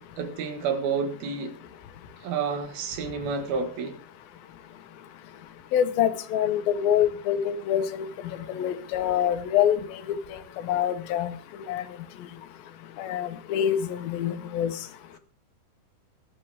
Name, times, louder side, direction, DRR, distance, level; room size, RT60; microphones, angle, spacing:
voice 1, 0.0-1.6 2.2-4.0, right 5 dB, 85° right, 8 dB, 3.5 m, -30 dB
voice 2, 5.7-8.1 8.5-10.0 10.3-11.4 11.7-11.8 13.0-14.7, left 10 dB, 85° left, 10 dB, 2.9 m, -25 dB
21.0 x 9.8 x 3.5 m, 0.36 s
omnidirectional pair, 4.1 m